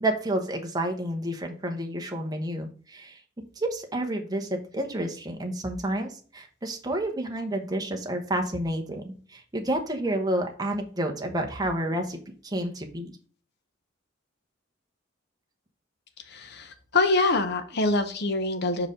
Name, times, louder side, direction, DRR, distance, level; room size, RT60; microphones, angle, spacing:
voice 1, 0.0-3.2 3.6-12.2 12.4-13.1, right 1 dB, 20° right, 2 dB, 1.0 m, -30 dB
voice 2, 16.3-18.9, left 2 dB, 55° left, 9 dB, 0.8 m, -25 dB
5.3 x 4.8 x 3.7 m, 0.42 s
head